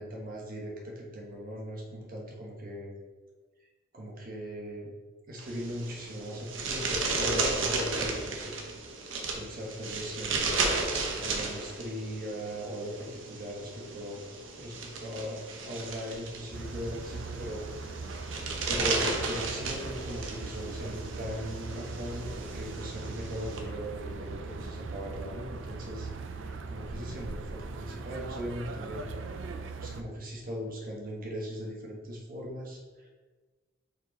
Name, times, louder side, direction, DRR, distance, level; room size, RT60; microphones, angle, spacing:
voice 1, 0.0-2.9 3.9-4.9 5.3-8.6 9.3-10.5 11.2-14.2 14.6-17.7 18.7-29.1 29.4-29.5 29.8-33.1, equal, 50° right, -2 dB, 1.2 m, -39 dB
sound 1, 5.4-23.6, right 3 dB, 90° right, 0.9 m, -34 dB
sound 2, 16.5-30.0, right 3 dB, 75° right, 0.5 m, -40 dB
5.1 x 4.6 x 4.0 m, 1.4 s
head